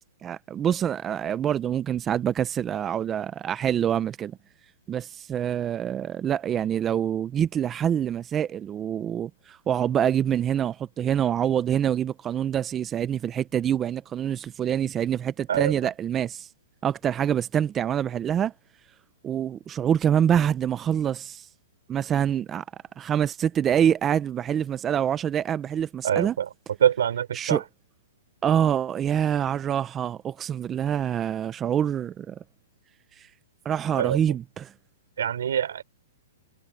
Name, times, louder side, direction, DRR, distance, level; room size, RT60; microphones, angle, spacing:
voice 1, 0.2-4.4 4.9-16.5 16.8-18.5 19.2-21.4 21.9-22.6 23.0-26.4 27.3-27.6 28.4-32.4 33.6-34.7, right 9 dB, 15° right, 0.6 m, -26 dB
voice 2, 26.0-26.5 26.8-27.6 34.0-34.2 35.2-35.8, right 9 dB, 75° right, 4.5 m, -24 dB
hypercardioid pair, 155°, 0 cm